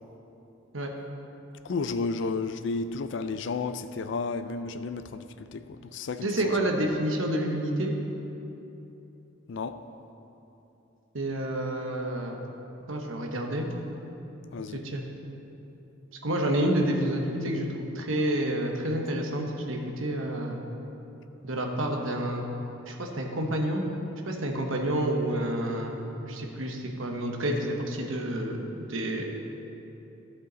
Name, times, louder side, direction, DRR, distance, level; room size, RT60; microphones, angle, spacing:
voice 1, 1.6-6.3 9.5-9.8 14.5-14.8, left 4 dB, 60° left, 11 dB, 0.4 m, -32 dB
voice 2, 6.2-7.9 11.1-12.4 12.9-13.7 14.7-15.0 16.2-20.6 21.4-22.4 22.9-23.9 24.3-26.0 26.3-29.3, right 1 dB, 75° right, 2 dB, 1.1 m, -29 dB
13.0 x 7.4 x 4.0 m, 3.0 s
head